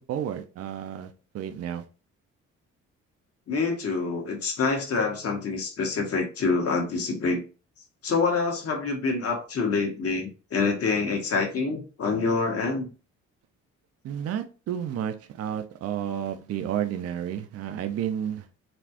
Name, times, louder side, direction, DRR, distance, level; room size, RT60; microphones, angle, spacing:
voice 1, 0.0-1.8 14.0-18.5, right 9 dB, 55° right, 7 dB, 0.5 m, -31 dB
voice 2, 3.5-7.4 8.0-12.9, left 4 dB, 50° left, 2 dB, 1.3 m, -26 dB
4.1 x 2.4 x 2.8 m, 0.33 s
cardioid pair, 90°, 30 cm